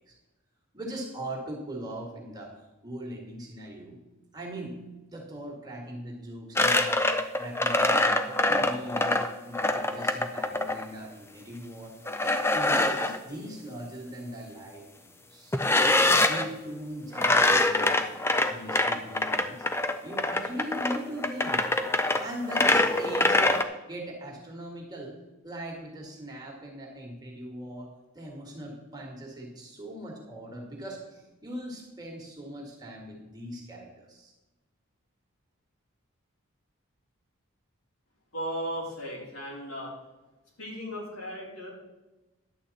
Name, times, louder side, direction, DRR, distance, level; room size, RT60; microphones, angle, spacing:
voice 1, 0.7-2.5 2.8-4.0 4.3-4.8 5.1-7.0 7.4-11.9 12.2-15.6 16.3-18.2 18.5-19.7 20.0-21.7 22.2-25.2 25.4-34.3, right 1 dB, 20° right, -1 dB, 2.0 m, -40 dB
sound 1, 6.6-10.8 12.1-13.2 15.5-16.5 17.1-23.6, left 2 dB, 10° left, 0.5 m, -24 dB
voice 2, 38.3-39.9 40.6-41.7, equal, 80° left, -4 dB, 3.9 m, -36 dB
11.0 x 8.5 x 4.1 m, 1.1 s
head